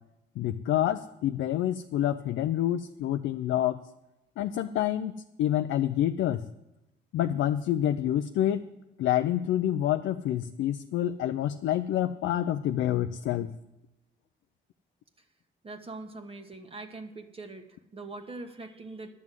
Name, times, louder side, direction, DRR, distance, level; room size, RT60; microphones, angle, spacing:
voice 1, 0.4-3.8 4.4-5.1 5.4-6.4 7.1-8.6 9.0-13.5, left 11 dB, 75° left, 9 dB, 0.5 m, -27 dB
voice 2, 15.6-19.1, right 3 dB, 30° right, 4 dB, 1.2 m, -42 dB
11.0 x 6.2 x 9.0 m, 0.93 s
cardioid pair, 90°, 20 cm